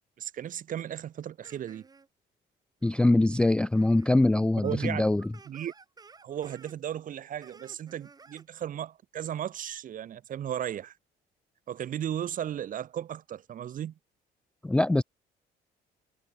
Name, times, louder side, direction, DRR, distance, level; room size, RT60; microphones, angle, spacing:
voice 1, 0.2-1.8 4.6-5.0 5.5-5.7 6.2-10.9 11.7-13.9, right 10 dB, 50° right, 1.8 m, -35 dB
sound 1, 0.8-0.9 1.4-2.1 2.8-2.9 3.7-4.1 4.4-6.8 7.4-8.5, right 4 dB, 20° right, 1.7 m, -54 dB
voice 2, 2.8-5.2 14.6-15.0, left 2 dB, 5° left, 0.3 m, -23 dB
cardioid pair, 110°, 17 cm